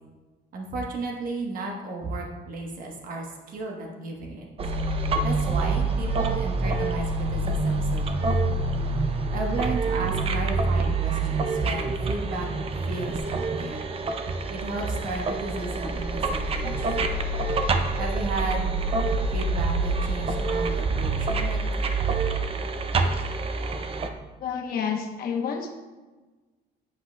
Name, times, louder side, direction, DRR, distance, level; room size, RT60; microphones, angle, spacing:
voice 1, 0.5-4.5 5.2-8.1 8.4-8.6 9.3-12.5 12.8-13.9 14.5-17.2 18.0-18.8 19.3-21.6, right 2 dB, 55° right, 0 dB, 1.2 m, -33 dB
sound 1, 4.6-24.1, right 3 dB, 35° right, 0.6 m, -26 dB
voice 2, 24.4-25.7, left 6 dB, 60° left, 2 dB, 0.9 m, -29 dB
9.8 x 5.7 x 2.2 m, 1.2 s
cardioid pair, 110°, 17 cm